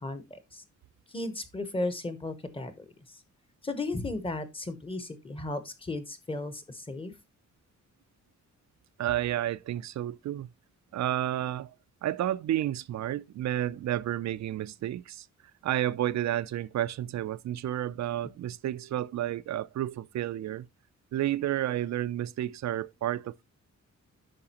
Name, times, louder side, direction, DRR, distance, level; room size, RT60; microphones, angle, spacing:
voice 1, 0.0-0.6 1.1-3.2 3.6-7.1, left 2 dB, 20° left, 0.9 m, -35 dB
voice 2, 9.0-10.5 10.9-11.7 12.0-15.3 15.6-20.7 21.1-23.4, right 12 dB, 65° right, 0.4 m, -31 dB
8.7 x 5.9 x 2.9 m
wide cardioid pair, 180°, 30 cm